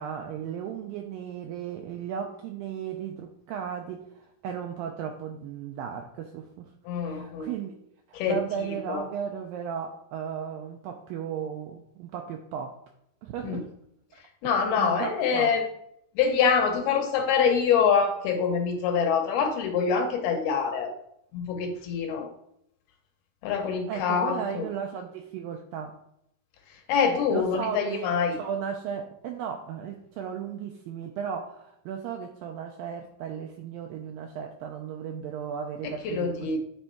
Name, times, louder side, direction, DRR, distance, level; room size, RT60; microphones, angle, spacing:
voice 1, 0.0-6.7 7.0-7.7 8.1-12.8 13.2-13.7 14.1-14.2 14.8-15.5 23.9-26.0 27.3-36.6, right 8 dB, 85° right, 3 dB, 2.0 m, -35 dB
voice 2, 6.9-7.5 8.1-8.4 8.9-9.0 13.4-13.6 14.4-15.6 16.2-20.9 21.3-22.3 23.4-24.7 26.9-28.4 35.8-36.6, left 6 dB, 75° left, 4 dB, 2.6 m, -25 dB
9.6 x 3.5 x 4.4 m, 0.75 s
omnidirectional pair, 4.7 m